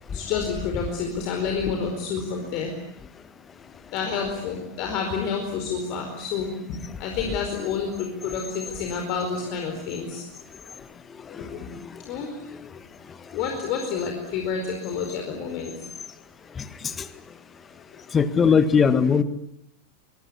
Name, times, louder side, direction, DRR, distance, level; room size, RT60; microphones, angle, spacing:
voice 1, 0.1-2.7 3.9-6.5 7.0-10.2 11.3-11.7 12.0-12.4 12.8-12.9 13.3-15.9, left 6 dB, 40° left, 3 dB, 4.7 m, -29 dB
voice 2, 11.3-11.8 16.6-17.1 18.1-19.2, left 6 dB, 20° left, 13 dB, 1.8 m, -21 dB
24.5 x 23.5 x 9.9 m, 0.76 s
figure-of-eight pair, 90°, 0 cm